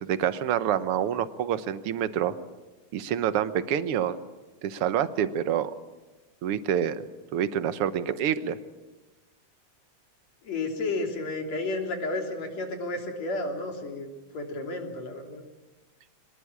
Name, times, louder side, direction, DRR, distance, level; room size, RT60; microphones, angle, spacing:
voice 1, 0.0-2.4 2.9-4.2 4.6-5.7 6.4-7.0 7.3-8.6, right 9 dB, 65° right, 12 dB, 1.5 m, -27 dB
voice 2, 10.4-14.1 14.3-15.4, left 2 dB, 60° left, 3 dB, 4.2 m, -32 dB
23.5 x 20.0 x 8.6 m, 1.1 s
omnidirectional pair, 3.5 m